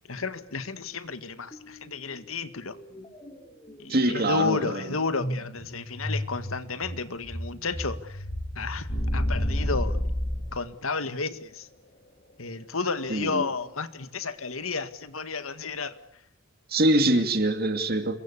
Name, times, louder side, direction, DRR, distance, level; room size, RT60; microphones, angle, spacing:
voice 1, 0.1-2.8 3.8-8.2 8.6-10.0 10.5-11.7 12.4-16.0, left 4 dB, 85° left, 12 dB, 1.8 m, -32 dB
sound 1, 1.5-1.8 2.1-10.9, equal, 20° left, 4.0 m, -37 dB
voice 2, 3.9-4.8 13.1-13.5 16.7-18.2, right 1 dB, 45° right, 8 dB, 2.7 m, -24 dB
sound 2, 8.9-10.6, left 1 dB, 40° left, 3.5 m, -27 dB
27.0 x 23.0 x 8.4 m, 0.72 s
head